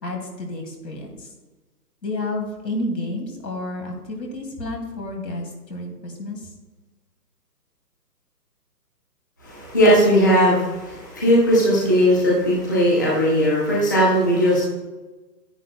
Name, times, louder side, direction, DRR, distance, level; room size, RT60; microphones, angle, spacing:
voice 1, 0.0-1.3 2.0-6.5, left 1 dB, 80° left, 2 dB, 2.5 m, -30 dB
voice 2, 9.4-14.6, equal, 10° left, -6 dB, 0.6 m, -18 dB
10.0 x 9.9 x 2.2 m, 1.2 s
hypercardioid pair, 155°, 49 cm